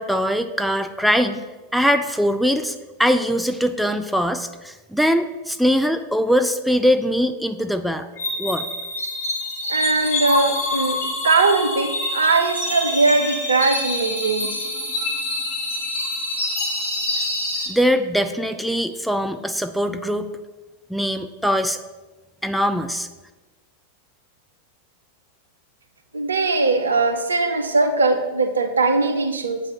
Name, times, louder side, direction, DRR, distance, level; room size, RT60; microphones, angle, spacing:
voice 1, 0.0-1.4 1.7-8.1 8.4-8.7 17.7-20.3 20.9-21.8 22.4-23.1, equal, ahead, 7 dB, 0.3 m, -21 dB
sound 1, 8.2-17.7, left 2 dB, 50° left, 1.4 m, -26 dB
voice 2, 9.7-14.6 26.1-29.6, right 3 dB, 75° right, 6 dB, 0.6 m, -20 dB
7.5 x 3.0 x 5.4 m, 1.2 s
figure-of-eight pair, 90°, 0 cm